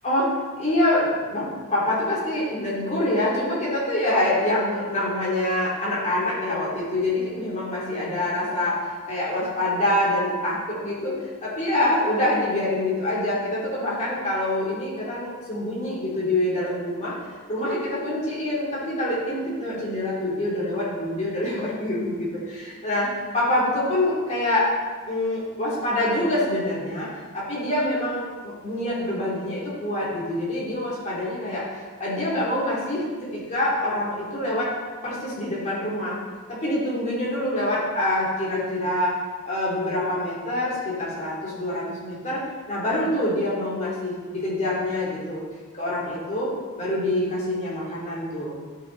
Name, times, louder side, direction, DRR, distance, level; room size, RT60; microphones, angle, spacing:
voice 1, 0.0-1.5 1.7-8.8 9.1-17.1 17.5-24.7 25.1-27.1 27.3-33.0 33.3-34.7 35.0-36.2 36.5-39.1 39.4-42.4 42.7-45.4 45.8-46.5 46.8-48.6, left 1 dB, 35° left, -7 dB, 2.8 m, -25 dB
11.0 x 6.0 x 4.0 m, 1.4 s
head